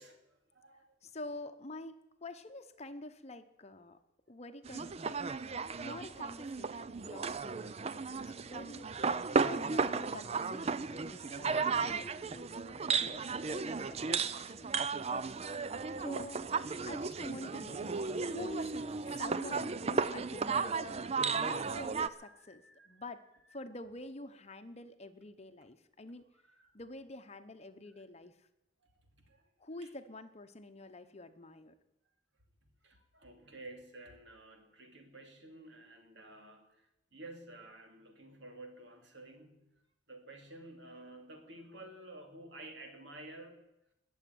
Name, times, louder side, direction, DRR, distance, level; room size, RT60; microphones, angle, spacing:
voice 1, 0.0-1.0 15.6-16.0 22.2-23.0 26.5-26.7 28.8-28.9 29.2-29.4 29.8-29.9 32.8-39.6 40.1-43.6, right 2 dB, 65° right, 4 dB, 2.8 m, -52 dB
voice 2, 1.0-4.0 4.3-13.2 13.5-15.6 16.0-18.0 18.2-18.7 19.2-21.0 21.3-23.2 23.5-26.2 26.7-28.5 29.6-31.7, left 2 dB, 35° left, 9 dB, 0.9 m, -48 dB
sound 1, 4.6-22.1, right 5 dB, 35° right, 0.5 m, -35 dB
21.0 x 7.3 x 9.5 m, 0.88 s
head